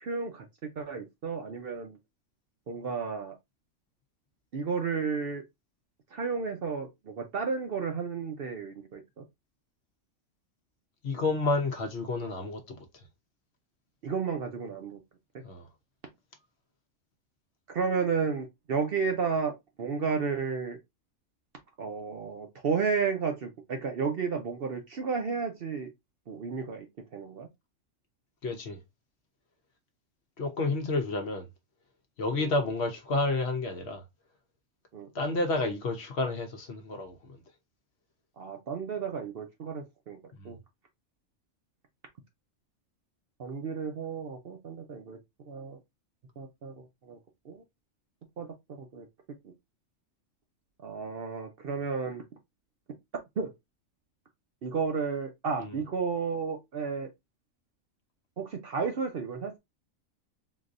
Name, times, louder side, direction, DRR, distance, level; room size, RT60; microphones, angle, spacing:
voice 1, 0.0-2.0 2.7-3.4 4.5-5.4 6.1-9.2 14.0-15.0 17.7-20.8 21.8-25.9 26.3-26.9 27.1-27.5 32.3-32.5 34.9-35.1 38.4-40.2 40.4-40.6 43.4-45.2 45.5-45.8 46.4-47.2 47.4-47.6 48.4-49.1 49.4-49.5 50.8-52.2 53.4-53.5 54.6-57.1 58.4-59.6, right 5 dB, 55° right, 0.7 m, -32 dB
voice 2, 11.0-13.0 15.4-15.7 28.4-28.8 30.4-31.5 32.2-34.0 35.1-37.4 40.4-40.5 55.6-55.8, left 3 dB, 55° left, 0.9 m, -30 dB
3.9 x 2.7 x 2.5 m
omnidirectional pair, 1.4 m